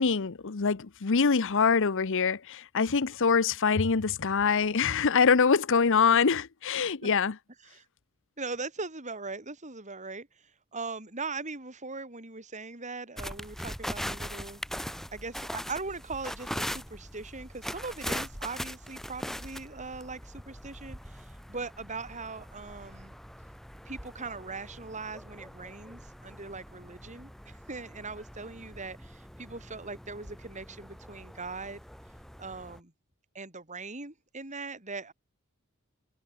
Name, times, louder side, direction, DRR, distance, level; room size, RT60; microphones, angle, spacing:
voice 1, 0.0-7.4, left 5 dB, 60° left, 0.8 m, -24 dB
voice 2, 8.4-14.6 15.1-23.1 23.8-31.8 32.4-32.9 33.3-35.1, right 3 dB, 35° right, 4.9 m, -40 dB
sound 1, 13.2-32.8, equal, ahead, 3.3 m, -41 dB
head